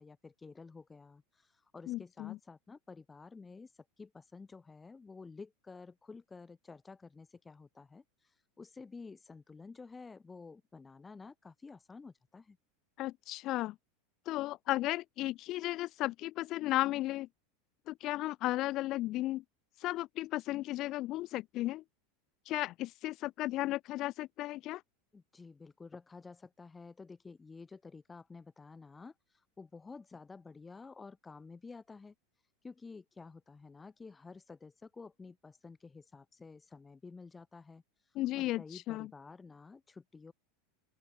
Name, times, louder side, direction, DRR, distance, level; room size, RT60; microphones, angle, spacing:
voice 1, 0.0-12.6 25.1-40.3, left 4 dB, 15° left, 7.3 m, -51 dB
voice 2, 1.9-2.4 13.0-13.7 14.3-17.3 17.9-19.4 19.8-21.8 22.5-24.8 38.1-39.1, left 16 dB, 45° left, 1.4 m, -35 dB
open air
supercardioid pair, 110°, 0 cm